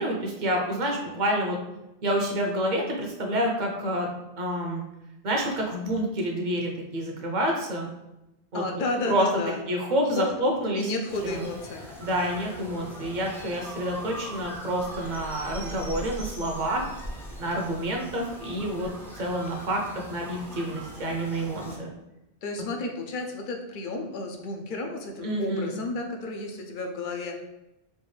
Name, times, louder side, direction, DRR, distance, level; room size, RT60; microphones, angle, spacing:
voice 1, 0.0-1.6 2.0-4.1 4.4-4.8 5.2-7.9 8.5-8.6 9.0-9.3 9.7-10.9 11.2-11.4 12.0-16.9 17.4-18.9 19.1-21.9 25.2-25.7, right 1 dB, 50° right, 1 dB, 0.8 m, -28 dB
voice 2, 8.5-9.6 10.2-10.3 10.8-11.9 21.5-21.7 22.4-27.4, left 2 dB, 60° left, 3 dB, 0.7 m, -32 dB
sound 1, 11.1-21.8, equal, 5° left, 0.5 m, -41 dB
4.5 x 2.5 x 3.2 m, 0.91 s
omnidirectional pair, 1.1 m